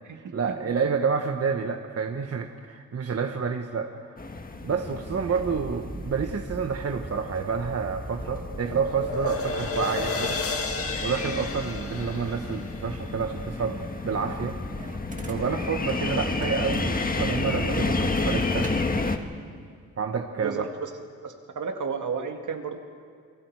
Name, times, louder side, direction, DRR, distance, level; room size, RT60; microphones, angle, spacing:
voice 1, 0.1-3.9 4.6-10.4 11.0-13.8 14.0-14.6 15.2-18.7 20.0-20.7, right 5 dB, 50° right, 5 dB, 1.2 m, -29 dB
sound 1, 4.2-19.2, left 3 dB, 30° left, 1.6 m, -31 dB
sound 2, 5.1-19.1, right 2 dB, 25° right, 2.3 m, -42 dB
sound 3, 7.7-14.0, left 4 dB, 45° left, 1.9 m, -33 dB
voice 2, 20.4-20.9 21.2-22.8, right 5 dB, 70° right, 4 dB, 2.1 m, -32 dB
29.0 x 22.0 x 4.8 m, 2.1 s
cardioid pair, 75°, 31 cm